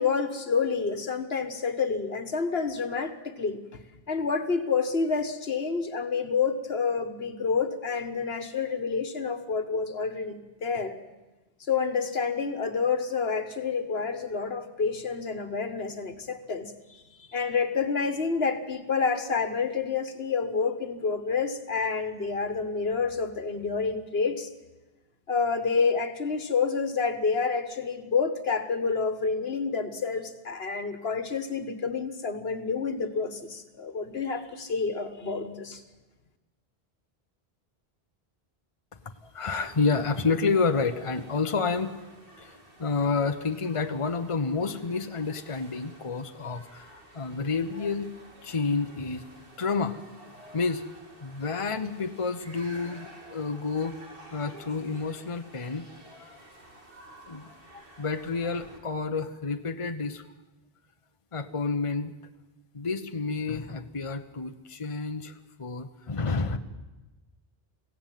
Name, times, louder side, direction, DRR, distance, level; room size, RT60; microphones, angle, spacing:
voice 1, 0.0-3.8 4.1-11.0 11.7-24.5 25.3-35.8, left 5 dB, 75° left, 10 dB, 1.7 m, -28 dB
voice 2, 39.2-41.9 42.4-48.1 48.4-49.3 49.6-50.8 51.2-53.9 54.3-56.4 57.3-60.3 61.3-62.1 62.7-66.6, left 4 dB, 30° left, 7 dB, 1.1 m, -30 dB
sound 1, 39.4-58.8, right 1 dB, 60° right, 3.5 m, -51 dB
23.0 x 16.5 x 9.3 m, 1.1 s
omnidirectional pair, 1.0 m